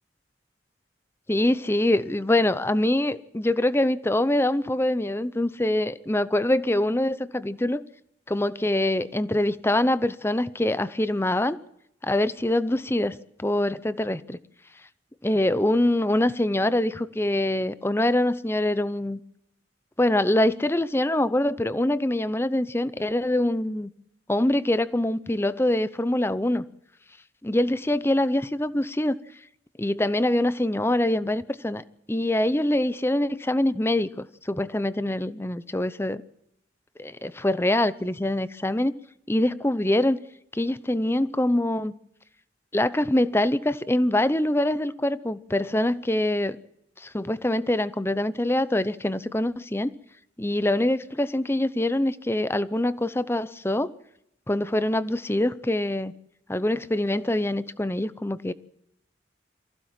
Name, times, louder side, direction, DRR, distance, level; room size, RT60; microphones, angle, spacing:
voice 1, 1.3-7.8 8.3-11.6 12.0-14.4 15.2-19.2 20.0-23.9 24.3-26.6 27.4-29.2 29.8-36.2 37.0-38.9 39.3-40.2 40.5-42.0 42.7-46.6 47.0-49.9 50.4-53.9 54.5-56.1 56.5-58.5, left 1 dB, 15° left, 0.7 m, -24 dB
23.5 x 15.5 x 7.5 m
head